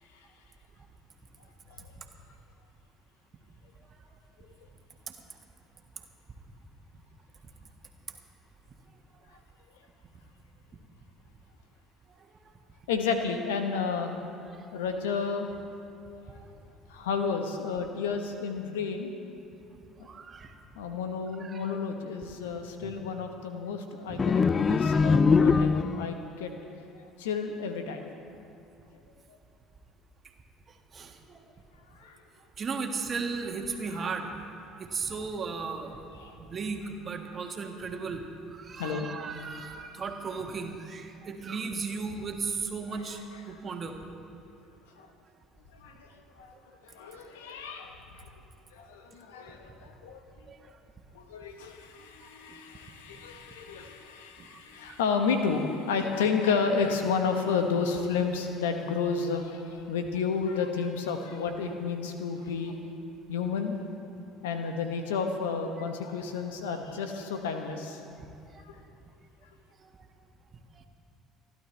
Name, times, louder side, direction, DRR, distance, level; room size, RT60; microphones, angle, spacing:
voice 1, 12.9-14.2 14.7-15.6 16.3-16.4 16.9-19.1 20.0-20.1 20.7-26.5 26.9-28.1 29.3-29.4 31.9-32.2 36.1-36.4 38.8-39.1 42.9-43.6 44.5-44.6 45.0-45.1 45.7-46.5 46.8-48.3 48.7-50.2 51.1-62.8 63.3-63.8 64.4-68.0 68.6-68.8, left 5 dB, 75° left, 6 dB, 1.1 m, -31 dB
voice 2, 20.0-20.5 21.4-21.7 22.8-22.9 24.1-24.2 30.9-31.4 32.6-34.3 34.8-36.0 36.4-38.2 38.5-43.2 43.5-44.0 50.5-50.6 52.5-52.6 54.4-54.5 54.9-55.0 68.2-68.3 68.5-68.6 69.8-69.9, right 5 dB, 40° right, 3 dB, 1.6 m, -36 dB
sound 1, 24.2-26.2, left 5 dB, 30° left, 0.4 m, -22 dB
29.0 x 11.5 x 3.3 m, 2.6 s
hypercardioid pair, 60°, 0 cm